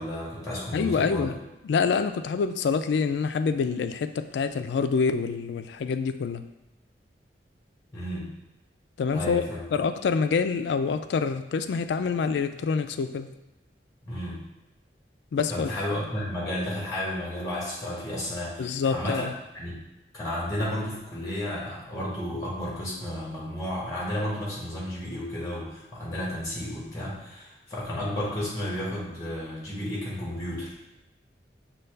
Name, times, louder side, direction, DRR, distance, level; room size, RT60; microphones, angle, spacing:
voice 1, 0.0-1.3 7.9-8.3 9.1-9.8 14.0-14.4 15.5-19.2 19.5-19.8 20.1-30.8, left 1 dB, 20° left, -6 dB, 1.4 m, -32 dB
voice 2, 0.7-1.4 1.6-6.4 9.0-9.4 9.7-13.3 15.3-15.7 18.6-19.3, left 5 dB, 75° left, 10 dB, 0.3 m, -26 dB
6.7 x 2.3 x 3.3 m, 0.98 s
head